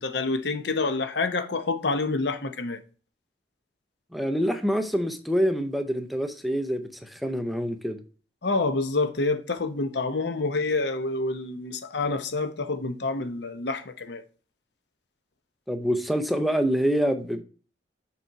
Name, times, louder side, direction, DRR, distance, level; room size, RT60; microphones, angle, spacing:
voice 1, 0.0-2.8 8.4-14.2, left 3 dB, 65° left, 0.8 m, -27 dB
voice 2, 4.1-8.0 15.7-17.4, equal, ahead, 0.6 m, -26 dB
6.7 x 4.4 x 4.6 m
head